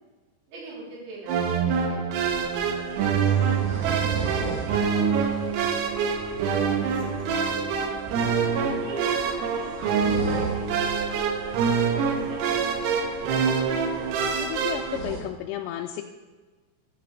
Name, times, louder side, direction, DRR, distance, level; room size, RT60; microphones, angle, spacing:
voice 1, 0.5-4.3 4.7-5.7 6.8-7.5 8.6-13.8, right 2 dB, 45° right, -7 dB, 5.3 m, -44 dB
sound 1, 1.3-15.0, right 6 dB, 90° right, 3.9 m, -25 dB
sound 2, 2.2-15.2, right 4 dB, 65° right, 3.5 m, -39 dB
voice 2, 14.4-16.0, left 11 dB, 85° left, 3 dB, 3.2 m, -32 dB
14.5 x 9.5 x 3.5 m, 1.3 s
omnidirectional pair, 5.9 m